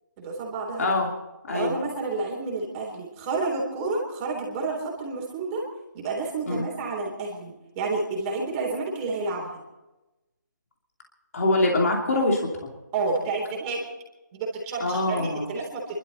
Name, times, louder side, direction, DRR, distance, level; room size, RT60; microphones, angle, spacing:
voice 1, 0.2-0.9 1.5-5.6 5.9-9.5 12.9-13.9 14.3-16.0, right 3 dB, 20° right, -2 dB, 3.7 m, -30 dB
voice 2, 0.8-1.1 1.5-1.7 6.5-6.6 11.3-12.5 14.8-15.5, left 2 dB, 55° left, 0 dB, 2.7 m, -24 dB
27.0 x 12.5 x 4.2 m, 1.0 s
figure-of-eight pair, 155°, 10 cm